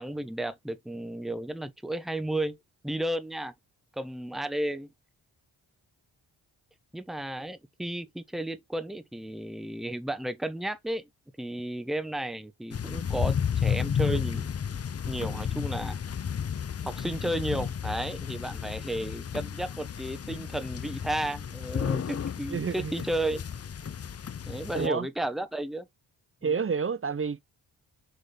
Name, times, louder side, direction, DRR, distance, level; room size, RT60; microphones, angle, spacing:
voice 1, 0.0-2.6 2.8-3.5 4.0-4.9 6.9-11.1 11.4-14.5 15.1-16.0 16.8-23.4 24.5-25.9 26.4-26.6, right 1 dB, ahead, 1.0 m, -33 dB
sound 1, 12.7-24.9, left 7 dB, 30° left, 0.5 m, -32 dB
voice 2, 22.5-22.9 24.7-25.1 26.4-27.4, right 6 dB, 30° right, 0.5 m, -29 dB
6.7 x 3.6 x 4.3 m
cardioid pair, 70°, 49 cm